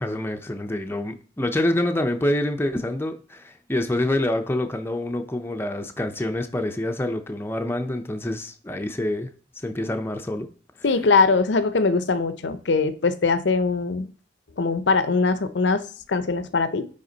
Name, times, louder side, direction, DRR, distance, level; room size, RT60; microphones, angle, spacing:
voice 1, 0.0-9.3 9.6-10.5, left 1 dB, 15° left, 0.6 m, -26 dB
voice 2, 10.8-14.1 14.6-16.9, left 4 dB, 70° left, 0.6 m, -22 dB
9.5 x 3.6 x 3.9 m
head